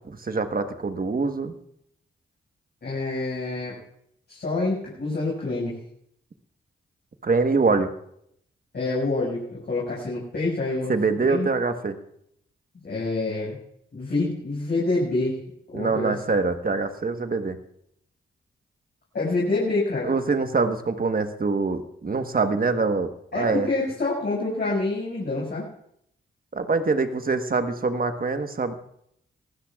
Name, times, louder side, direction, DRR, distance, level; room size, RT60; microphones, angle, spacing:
voice 1, 0.2-1.5 7.2-7.9 10.9-12.0 15.7-17.6 20.0-23.7 26.5-28.7, right 4 dB, 45° right, 8 dB, 1.3 m, -24 dB
voice 2, 2.8-3.8 4.3-5.8 8.7-11.5 12.8-13.6 13.9-15.4 15.7-16.1 19.1-20.1 23.3-25.7, left 2 dB, 55° left, -5 dB, 6.0 m, -27 dB
22.5 x 16.0 x 2.4 m, 0.72 s
supercardioid pair, 45°, 21 cm